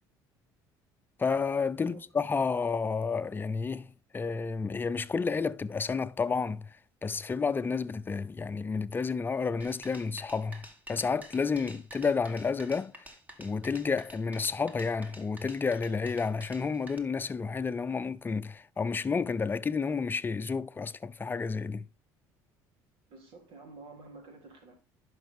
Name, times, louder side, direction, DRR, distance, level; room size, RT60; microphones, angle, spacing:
voice 1, 1.2-6.8 7.0-13.1 13.4-21.9, left 5 dB, 25° left, 0.6 m, -31 dB
sound 1, 9.6-17.0, equal, 20° right, 2.0 m, -50 dB
voice 2, 23.1-24.8, right 3 dB, 75° right, 3.5 m, -50 dB
11.0 x 5.7 x 3.6 m
supercardioid pair, 85°, 9 cm